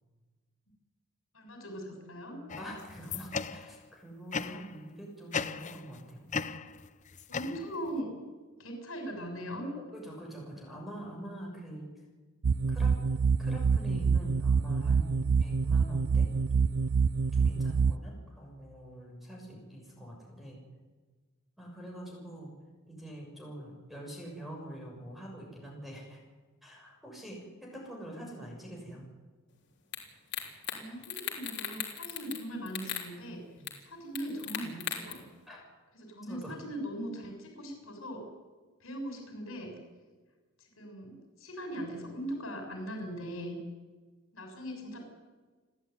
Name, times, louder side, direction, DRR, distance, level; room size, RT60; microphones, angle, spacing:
voice 1, 1.3-2.4 7.3-8.1 8.6-9.7 30.7-33.4 33.8-35.2 36.0-38.2 38.8-39.7 40.6-43.6 44.3-45.1, equal, 75° left, 4 dB, 6.8 m, -40 dB
sound 1, 2.5-3.9 4.3-4.8 5.3-6.0 6.3-8.0, left 5 dB, 35° left, 0.8 m, -37 dB
voice 2, 2.6-6.3 7.4-7.5 9.8-11.9 12.7-13.0 13.4-16.6 17.3-20.6 21.6-22.5 22.9-26.2 26.6-29.0 33.6-33.8 35.5-35.6 36.3-36.6, right 1 dB, ahead, -1 dB, 6.8 m, -45 dB
sound 2, 12.4-17.9, right 5 dB, 85° right, 0.6 m, -26 dB
sound 3, 29.9-30.0 30.3-30.8 31.0-32.4 32.7-33.1 33.7-33.8 34.2-35.1, left 10 dB, 55° left, 3.9 m, -36 dB
30.0 x 12.5 x 9.7 m, 1.4 s
head